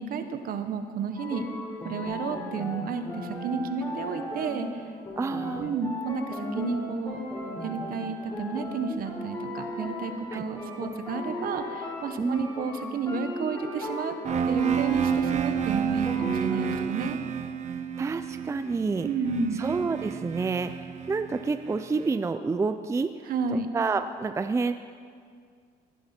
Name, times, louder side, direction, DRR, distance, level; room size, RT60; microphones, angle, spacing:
voice 1, 0.0-1.5 1.8-4.9 5.6-7.2 7.6-14.1 14.5-17.2 19.0-19.6 23.3-23.7, right 5 dB, 60° right, 8 dB, 1.2 m, -31 dB
sound 1, 1.2-16.8, left 1 dB, 25° left, 4.2 m, -37 dB
voice 2, 5.2-5.7 8.9-9.0 10.3-10.4 12.2-12.5 16.2-16.9 18.0-19.1 19.5-23.1 23.7-24.7, right 4 dB, 15° right, 9 dB, 0.4 m, -29 dB
sound 2, 14.2-22.1, right 8 dB, 45° right, 0.9 m, -30 dB
18.0 x 11.5 x 4.4 m, 2.1 s
cardioid pair, 110°, 17 cm